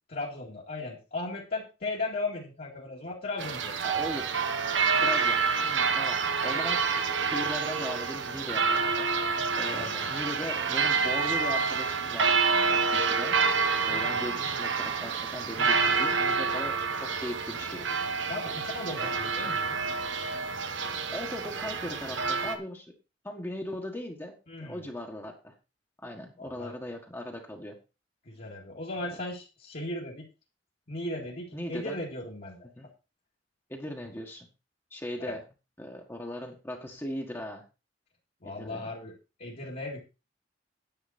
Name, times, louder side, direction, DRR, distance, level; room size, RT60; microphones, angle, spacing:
voice 1, 0.1-3.7 9.7-10.1 13.8-14.3 15.6-15.9 18.3-19.8 24.5-24.9 26.4-26.7 28.3-30.3 30.9-32.7 35.2-35.3 38.4-39.1 39.4-40.0, left 2 dB, 50° left, -5 dB, 2.3 m, -37 dB
sound 1, 3.4-22.6, right 5 dB, 90° right, 1.4 m, -28 dB
voice 2, 3.8-4.4 5.0-6.9 7.3-9.1 9.5-13.4 13.8-17.9 18.4-18.6 19.4-19.5 21.1-22.9 23.2-24.3 24.6-25.5 26.0-27.8 31.5-32.0 32.6-32.9 33.7-34.5 34.9-35.4 35.8-37.6 38.4-38.9, left 1 dB, 15° left, 1 dB, 1.5 m, -39 dB
10.0 x 9.2 x 4.2 m, 0.30 s
head